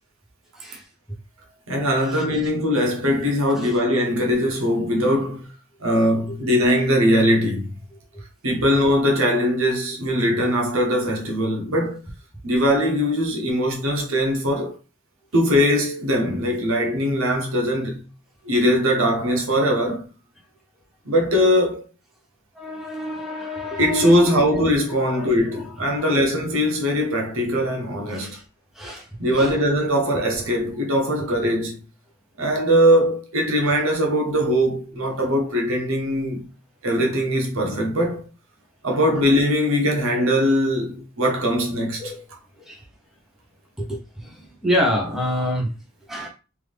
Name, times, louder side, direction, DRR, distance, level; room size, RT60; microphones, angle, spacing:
voice 1, 1.7-5.5 5.8-7.8 8.4-12.0 12.4-14.8 15.3-18.1 18.4-20.1 21.0-21.8 23.8-28.4 29.2-31.8 32.4-36.5 36.8-38.3 38.8-42.1, equal, 75° right, 1.0 m, -21 dB
voice 2, 22.5-24.6 24.9-26.1 28.1-28.4 28.7-29.1 29.4-29.5 42.0-42.2 42.7-42.8 43.8-45.7 46.1-46.3, equal, ahead, 1.0 m, -28 dB
3.5 x 2.7 x 3.4 m
head